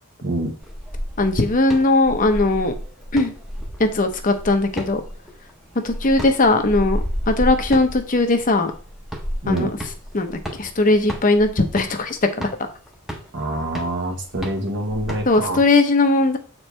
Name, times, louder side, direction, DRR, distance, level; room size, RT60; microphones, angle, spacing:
voice 1, 0.2-0.5 9.4-9.7 13.3-15.6, right 1 dB, 55° right, 2 dB, 1.3 m, -26 dB
sound 1, 0.6-15.6, equal, ahead, 1.0 m, -32 dB
voice 2, 1.2-2.7 3.1-3.3 3.8-5.0 5.8-8.7 9.5-9.7 10.1-12.2 15.3-16.4, left 2 dB, 40° left, 6 dB, 0.9 m, -19 dB
7.9 x 4.6 x 3.3 m, 0.40 s
head